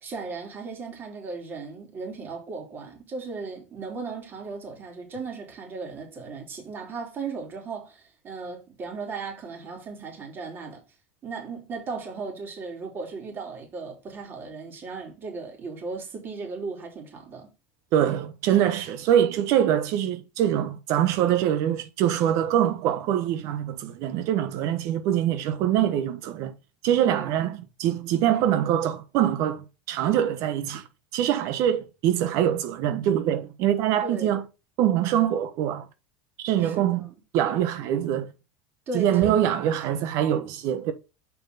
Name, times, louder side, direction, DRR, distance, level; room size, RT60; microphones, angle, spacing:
voice 1, 0.0-10.8 11.2-17.5 27.0-27.3 34.0-34.3 36.6-37.0 38.9-39.1, right 4 dB, 35° right, 3.5 m, -36 dB
voice 2, 17.9-26.5 26.8-27.5 27.8-30.8 31.1-34.4 34.8-35.9 36.4-37.1 37.3-38.3 38.9-40.9, right 10 dB, 60° right, 1.1 m, -24 dB
7.2 x 4.9 x 4.0 m
hypercardioid pair, 95°, 6 cm